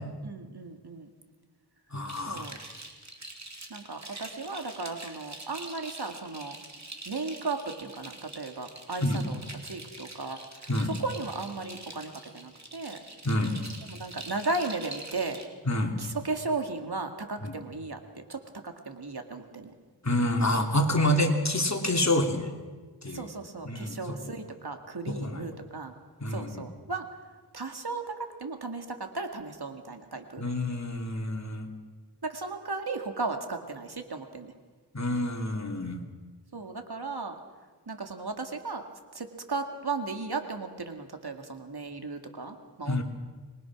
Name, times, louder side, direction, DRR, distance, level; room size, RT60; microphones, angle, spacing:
voice 1, 0.2-1.1 2.3-2.6 3.7-6.6 7.1-10.4 10.8-13.0 13.9-15.4 16.0-19.7 23.1-25.9 26.3-27.1 27.5-30.4 32.2-34.5 36.5-37.4 37.9-38.9 39.1-43.0, right 3 dB, 65° right, 5 dB, 2.3 m, -35 dB
voice 2, 1.9-2.5 9.0-9.2 10.7-10.9 13.2-13.6 15.7-16.0 17.4-17.5 20.0-22.5 23.0-23.3 23.6-24.2 25.1-25.4 26.2-26.6 30.4-31.7 34.9-36.0 42.9-43.0, left 1 dB, 40° left, 3 dB, 3.0 m, -27 dB
sound 1, 2.1-15.4, right 2 dB, 40° right, 2.9 m, -45 dB
26.5 x 22.0 x 6.2 m, 1.4 s
wide cardioid pair, 60°, 41 cm